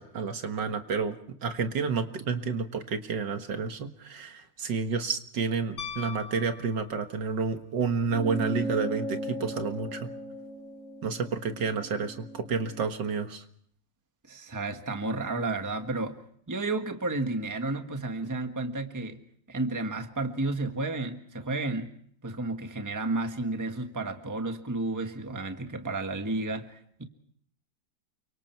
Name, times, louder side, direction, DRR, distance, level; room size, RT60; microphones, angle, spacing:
voice 1, 0.0-10.1 11.0-13.4, right 5 dB, 70° right, 7 dB, 2.1 m, -30 dB
Piano, 5.8-7.4 9.7-9.8, left 6 dB, 70° left, 4.7 m, -41 dB
sound 1, 8.1-12.9, right 1 dB, 40° left, 3.2 m, -37 dB
voice 2, 14.3-16.2 16.5-19.2 19.5-21.9 22.2-27.0, right 2 dB, 10° right, 6 dB, 1.4 m, -32 dB
29.0 x 24.5 x 4.6 m, 0.63 s
omnidirectional pair, 2.0 m